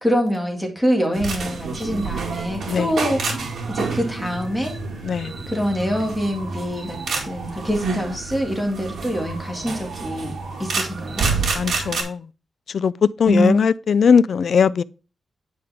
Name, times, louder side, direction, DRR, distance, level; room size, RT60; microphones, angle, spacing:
voice 1, 0.0-4.7 5.5-10.3 10.6-11.3 13.3-13.6, equal, ahead, 1.9 m, -24 dB
sound 1, 1.1-12.0, right 4 dB, 75° right, 2.2 m, -28 dB
voice 2, 11.5-12.2 12.7-14.8, left 6 dB, 60° left, 0.3 m, -19 dB
9.6 x 5.1 x 3.5 m
wide cardioid pair, 150°, 0 cm